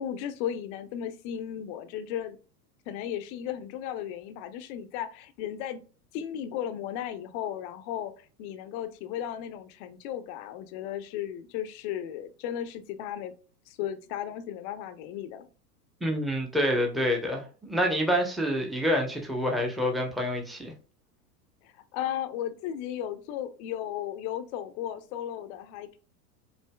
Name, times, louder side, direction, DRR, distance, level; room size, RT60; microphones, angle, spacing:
voice 1, 0.0-2.4 2.9-5.8 6.1-13.3 13.7-15.5 21.6-26.0, left 10 dB, 45° left, 0.7 m, -35 dB
voice 2, 16.0-20.7, equal, ahead, 0.8 m, -27 dB
7.7 x 2.7 x 2.3 m
hypercardioid pair, 100°, 50 cm